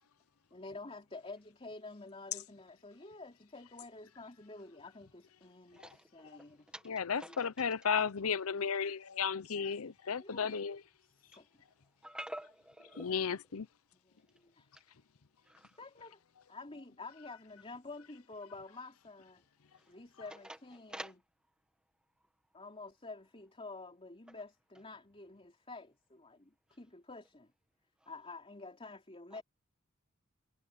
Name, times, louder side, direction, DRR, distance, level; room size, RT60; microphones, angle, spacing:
voice 1, 0.5-6.7 7.3-7.4 10.2-10.6 11.2-11.5 14.0-14.7 15.8-16.2 16.5-19.4 19.9-21.2 22.5-27.5 28.0-29.4, left 3 dB, 25° left, 3.3 m, -49 dB
voice 2, 6.8-10.8 12.9-13.7, left 6 dB, 80° left, 0.7 m, -34 dB
voice 3, 12.0-13.0 20.9-21.1, right 1 dB, 5° right, 1.8 m, -44 dB
head